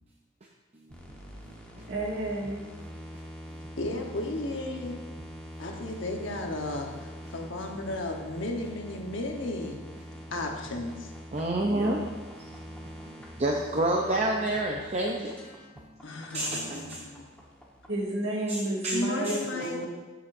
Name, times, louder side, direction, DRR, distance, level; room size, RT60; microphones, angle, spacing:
sound 1, 0.9-18.0, equal, 5° left, 1.2 m, -44 dB
voice 1, 1.9-2.7 11.6-12.0 17.9-19.9, right 1 dB, 60° right, -3 dB, 2.0 m, -31 dB
voice 2, 3.8-5.0 5.6-9.8 10.3-11.1 16.0-17.2 18.9-19.9, left 2 dB, 65° left, 2 dB, 1.1 m, -34 dB
voice 3, 11.3-12.0 13.0-13.1 13.4-15.3 16.3-17.0 18.5-19.0 19.2-19.7, right 1 dB, 30° right, -1 dB, 0.6 m, -28 dB
13.0 x 6.8 x 2.6 m, 1.3 s
head